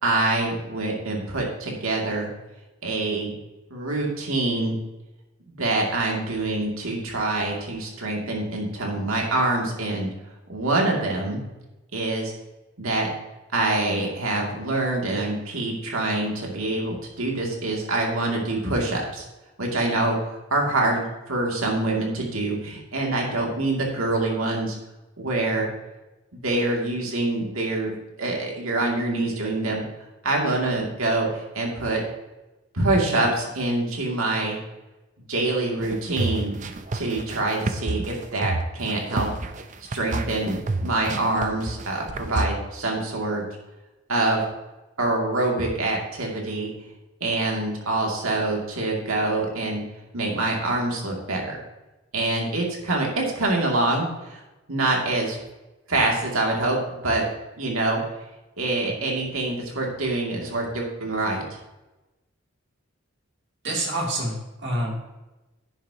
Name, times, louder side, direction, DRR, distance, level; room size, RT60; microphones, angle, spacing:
voice 1, 0.0-2.3 2.8-3.3 3.7-4.8 5.5-10.1 10.5-11.4 11.9-12.3 12.8-13.1 13.5-19.2 19.6-24.8 25.2-25.7 26.3-29.8 30.2-32.0 32.7-34.6 35.3-36.5 36.9-39.3 39.9-43.4 44.1-44.5 45.0-46.7 47.2-49.8 50.1-51.6 52.1-54.4 54.7-55.4 55.9-57.2 57.6-58.0 58.6-61.4, right 2 dB, 80° right, -1 dB, 2.6 m, -25 dB
sound 1, 35.8-42.5, right 2 dB, 35° right, 0.6 m, -29 dB
voice 2, 63.6-65.0, right 1 dB, 55° right, -1 dB, 2.7 m, -27 dB
10.5 x 10.0 x 2.9 m, 1.0 s
head